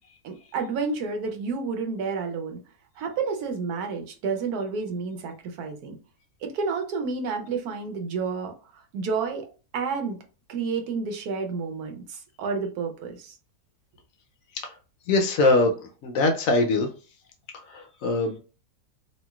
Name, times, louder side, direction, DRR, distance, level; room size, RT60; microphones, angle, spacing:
voice 1, 0.2-2.6 3.0-6.0 6.4-9.5 9.7-10.2 10.5-13.3, right 5 dB, 80° right, 4 dB, 1.1 m, -30 dB
voice 2, 15.1-15.7 16.0-16.9 17.7-18.4, left 2 dB, 70° left, 4 dB, 0.9 m, -22 dB
3.0 x 2.7 x 2.2 m, 0.35 s
omnidirectional pair, 1.6 m